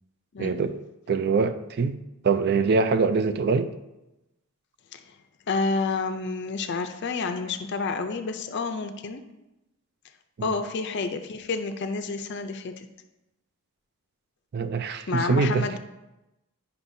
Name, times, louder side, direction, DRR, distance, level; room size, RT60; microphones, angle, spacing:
voice 1, 0.4-0.8 1.1-2.0 2.2-3.7 10.4-10.5 14.5-15.8, right 4 dB, 50° right, 10 dB, 0.4 m, -24 dB
voice 2, 5.5-9.2 10.4-12.9 15.1-15.8, left 4 dB, 55° left, 7 dB, 0.5 m, -29 dB
9.8 x 5.6 x 2.7 m, 0.97 s
head